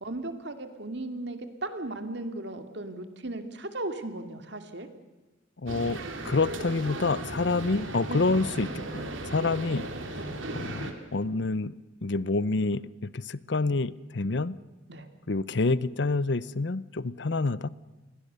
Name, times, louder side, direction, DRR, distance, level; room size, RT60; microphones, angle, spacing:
voice 1, 0.0-4.9 8.1-8.2 10.2-10.3 14.9-15.1, right 2 dB, 60° right, 8 dB, 2.5 m, -36 dB
voice 2, 5.6-9.9 10.5-11.7 12.0-14.6 15.3-17.7, left 3 dB, 60° left, 19 dB, 0.7 m, -28 dB
sound 1, 5.7-10.9, right 2 dB, 80° right, 3.3 m, -36 dB
28.5 x 21.0 x 6.8 m, 1.1 s
head